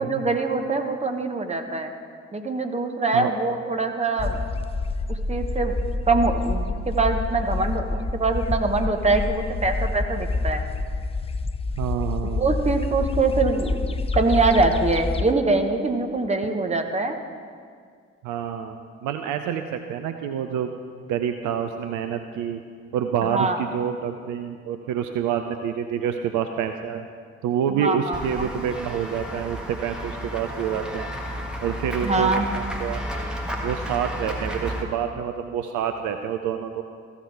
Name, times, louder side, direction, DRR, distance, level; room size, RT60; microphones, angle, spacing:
voice 1, 0.0-1.9 2.3-4.4 5.1-5.7 6.1-10.6 12.4-17.2 23.2-23.6 27.7-28.5 32.0-32.5, right 3 dB, 20° right, 5 dB, 1.0 m, -24 dB
sound 1, 4.2-15.3, left 3 dB, 15° left, 0.4 m, -27 dB
voice 2, 11.8-12.5 18.2-18.7 19.0-20.7 21.1-22.6 22.9-27.0 27.4-31.1 31.6-33.0 33.6-36.8, right 8 dB, 55° right, 7 dB, 0.6 m, -27 dB
Run / Walk footsteps / Bell, 28.1-34.8, equal, ahead, 1.5 m, -32 dB
14.5 x 5.7 x 4.6 m, 2.1 s
figure-of-eight pair, 45°, 37 cm